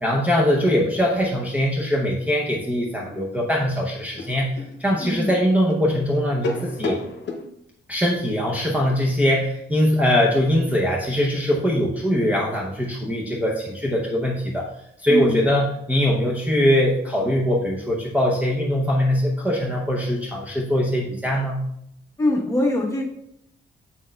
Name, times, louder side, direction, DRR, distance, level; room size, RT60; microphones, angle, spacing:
voice 1, 0.0-4.5 4.8-7.0 7.9-14.7 15.0-21.6, equal, 10° right, -3 dB, 0.6 m, -22 dB
sound 1, 4.2-7.5, left 2 dB, 70° left, 0.8 m, -31 dB
voice 2, 15.1-15.4 22.2-23.0, left 1 dB, 15° left, -2 dB, 1.0 m, -22 dB
7.4 x 6.0 x 2.2 m, 0.75 s
wide cardioid pair, 170°, 19 cm